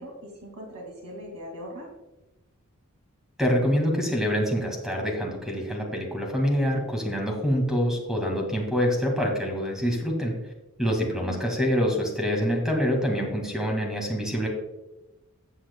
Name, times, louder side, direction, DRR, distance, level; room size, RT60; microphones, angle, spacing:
voice 1, 0.0-1.9 11.0-11.4, equal, 70° right, 0 dB, 2.4 m, -40 dB
voice 2, 3.4-10.3 10.8-14.5, equal, ahead, 0 dB, 2.0 m, -26 dB
14.5 x 8.0 x 2.3 m, 1.0 s
head